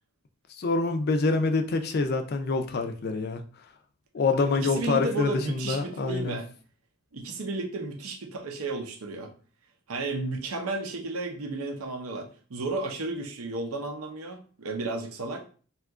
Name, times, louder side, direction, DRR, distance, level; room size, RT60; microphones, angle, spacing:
voice 1, 0.6-3.4 4.1-6.4, left 3 dB, 45° left, 6 dB, 0.4 m, -26 dB
voice 2, 4.4-6.5 7.1-9.3 9.9-15.4, right 3 dB, 85° right, 4 dB, 0.6 m, -33 dB
2.8 x 2.4 x 3.5 m, 0.40 s
head